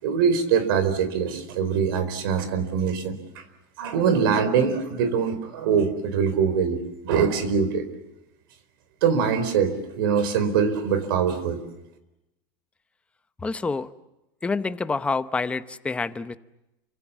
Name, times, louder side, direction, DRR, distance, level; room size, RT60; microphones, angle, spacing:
voice 1, 0.0-3.4 3.8-7.8 9.0-11.6, right 6 dB, 85° right, 12 dB, 4.4 m, -23 dB
voice 2, 13.4-13.9 14.4-16.4, left 4 dB, 10° left, 12 dB, 0.9 m, -27 dB
29.0 x 25.0 x 7.4 m, 0.93 s
supercardioid pair, 155°, 11 cm